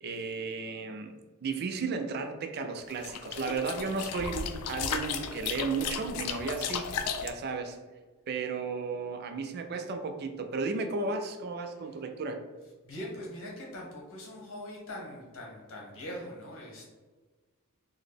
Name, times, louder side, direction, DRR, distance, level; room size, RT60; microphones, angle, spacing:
voice 1, 0.0-1.1 1.4-6.9 7.2-7.8 8.3-12.4, right 4 dB, 45° right, 6 dB, 0.3 m, -34 dB
sound 1, 2.9-7.3, left 7 dB, 85° left, 0.3 m, -35 dB
voice 2, 12.8-16.8, left 1 dB, 60° left, -2 dB, 1.1 m, -42 dB
3.9 x 2.1 x 3.3 m, 1.3 s
head